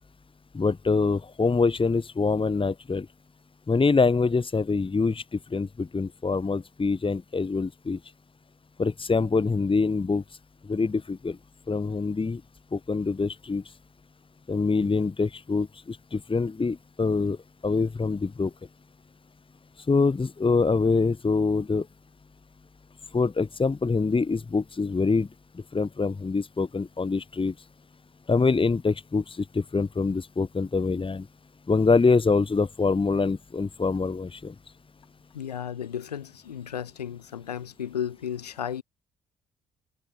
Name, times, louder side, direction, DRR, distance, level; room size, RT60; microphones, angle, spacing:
voice 1, 0.5-3.1 3.7-8.0 8.8-10.2 10.7-11.4 11.7-12.4 12.7-13.6 14.5-17.4 17.6-18.5 19.9-21.9 23.1-25.3 25.7-27.5 28.3-31.3 31.7-34.5, left 4 dB, 25° left, 2.0 m, -25 dB
voice 2, 35.3-38.8, left 9 dB, 85° left, 6.5 m, -34 dB
figure-of-eight pair, 40°, 20 cm